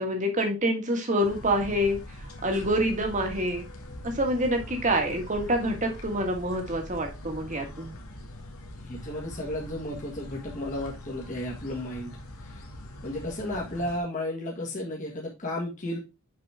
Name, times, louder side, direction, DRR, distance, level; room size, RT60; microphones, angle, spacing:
voice 1, 0.0-2.0 2.4-3.6 4.0-7.9, equal, 35° right, 4 dB, 1.7 m, -26 dB
sound 1, 1.2-14.0, left 1 dB, 80° left, 1.7 m, -42 dB
voice 2, 8.8-12.6 13.0-16.0, left 1 dB, 35° left, -2 dB, 1.6 m, -33 dB
6.9 x 5.2 x 3.4 m, 0.25 s
head